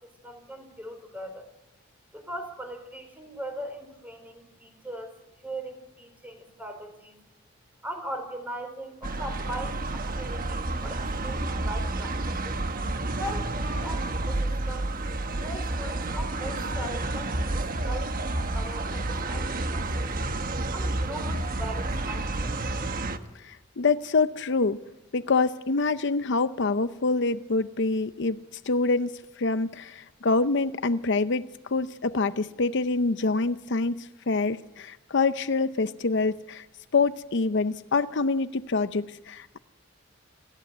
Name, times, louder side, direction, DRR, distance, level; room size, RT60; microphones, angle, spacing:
voice 1, 0.2-1.5 2.1-5.1 5.4-7.2 7.8-12.6 13.2-14.9 15.4-20.1 20.7-22.6, right 1 dB, 10° right, 4.1 m, -40 dB
sound 1, 9.0-23.2, right 2 dB, 45° right, 1.3 m, -30 dB
voice 2, 23.4-24.8 25.1-28.4 28.7-36.6 36.9-39.6, left 3 dB, 65° left, 0.7 m, -26 dB
29.0 x 14.0 x 8.1 m
head